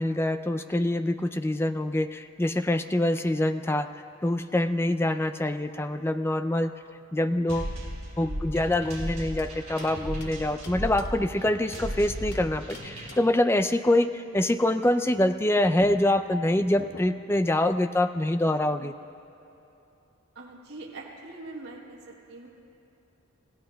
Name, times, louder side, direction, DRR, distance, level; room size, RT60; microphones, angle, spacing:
voice 1, 0.0-3.9 4.2-6.7 7.1-7.8 8.2-18.9, left 1 dB, 10° left, 9 dB, 0.3 m, -25 dB
sound 1, 7.5-13.1, equal, 30° right, 3.8 m, -36 dB
sound 2, 9.4-12.0 12.3-13.5 15.4-15.5 15.8-17.4, left 3 dB, 50° left, 0.8 m, -47 dB
voice 2, 20.3-22.5, right 2 dB, 70° right, -5 dB, 3.2 m, -43 dB
30.0 x 16.0 x 2.3 m, 2.9 s
head